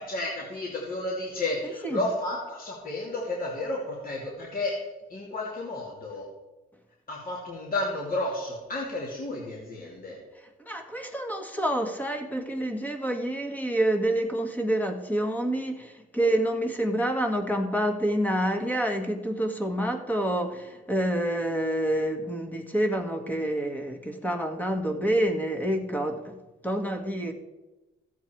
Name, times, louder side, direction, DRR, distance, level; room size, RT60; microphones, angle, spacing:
voice 1, 0.0-4.8 5.1-6.3 7.1-10.2, left 2 dB, 45° left, -3 dB, 2.9 m, -32 dB
voice 2, 10.6-26.4 26.6-27.3, right 1 dB, 10° left, 5 dB, 1.8 m, -28 dB
14.5 x 8.1 x 4.6 m, 1.1 s
cardioid pair, 90°, 20 cm